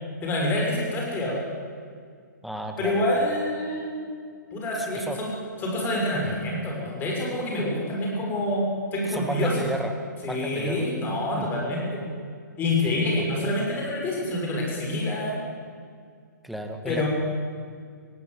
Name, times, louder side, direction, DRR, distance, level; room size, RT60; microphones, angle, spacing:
voice 1, 0.2-1.4 2.8-4.2 4.5-5.3 5.6-8.6 8.9-9.6 10.2-12.0 12.6-15.4 16.9-17.1, left 1 dB, 20° left, -1 dB, 6.2 m, -27 dB
voice 2, 2.4-3.0 4.8-5.2 9.1-9.9 10.2-10.9 11.4-11.5 12.8-13.2 16.4-17.1, equal, ahead, 4 dB, 1.7 m, -33 dB
18.0 x 17.0 x 9.4 m, 2.1 s
hypercardioid pair, 140°, 10 cm